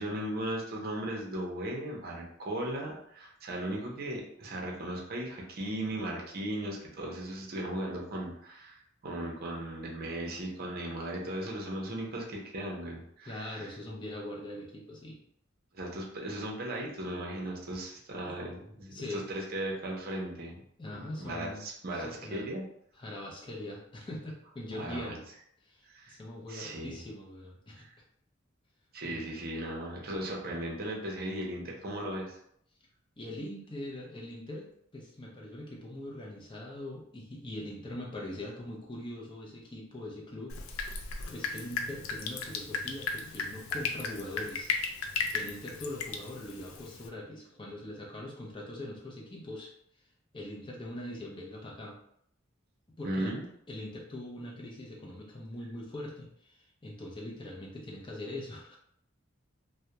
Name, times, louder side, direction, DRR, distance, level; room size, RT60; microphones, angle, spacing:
voice 1, 0.0-13.7 15.7-20.6 20.9-22.6 24.8-25.2 25.9-26.2 26.5-27.0 28.9-32.4 53.0-53.4, right 1 dB, 50° right, -1 dB, 0.6 m, -37 dB
voice 2, 13.3-15.2 18.2-18.3 18.9-19.2 20.8-21.6 21.9-22.5 23.0-25.2 25.6-27.9 29.0-29.2 30.2-30.3 33.2-34.7 34.9-41.0 41.3-44.7 45.3-49.7 50.3-52.0 53.0-53.4 53.7-58.8, left 1 dB, 25° left, -2 dB, 0.5 m, -42 dB
Drip, 40.5-47.1, left 4 dB, 85° left, 0.4 m, -36 dB
2.3 x 2.1 x 2.8 m, 0.70 s
head